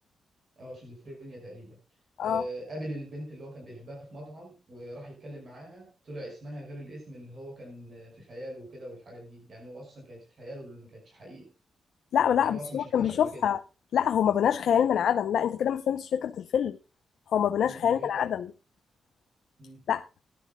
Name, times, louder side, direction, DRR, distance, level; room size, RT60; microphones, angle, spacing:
voice 1, 0.6-1.8 2.2-11.5 12.4-13.5 17.6-18.3 19.6-19.8, equal, 40° right, 5.6 m, -42 dB
voice 2, 12.1-13.6 13.9-16.8 17.3-18.5 19.9-20.0, left 9 dB, 80° left, 0.6 m, -25 dB
18.5 x 11.0 x 2.3 m
wide cardioid pair, 165°, 0 cm